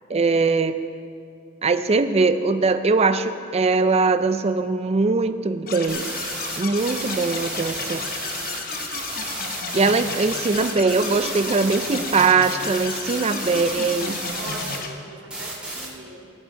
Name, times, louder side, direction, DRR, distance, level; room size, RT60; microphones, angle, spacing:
voice 1, 0.1-0.8 1.6-6.1 6.6-8.0 9.7-14.2, right 4 dB, 30° right, 11 dB, 0.5 m, -21 dB
sound 1, 5.7-14.9, left 5 dB, 50° left, 0.8 m, -33 dB
sound 2, 5.9-14.8 15.3-15.9, right 1 dB, 5° right, 1.9 m, -32 dB
voice 2, 14.3-16.3, right 2 dB, 75° right, -2 dB, 2.4 m, -40 dB
18.0 x 7.0 x 4.7 m, 2.5 s
head